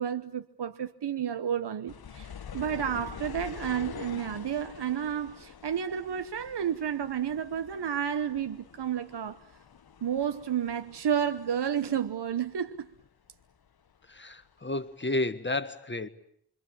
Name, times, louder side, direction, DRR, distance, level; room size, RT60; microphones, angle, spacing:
voice 1, 0.0-9.4 10.0-12.9, right 8 dB, 85° right, 1.1 m, -31 dB
sound 1, 1.9-13.1 13.3-14.4 14.9-15.0, left 7 dB, 65° left, 1.1 m, -46 dB
voice 2, 14.1-16.1, left 2 dB, 30° left, 1.5 m, -31 dB
26.5 x 24.5 x 8.7 m
wide cardioid pair, 70°, 39 cm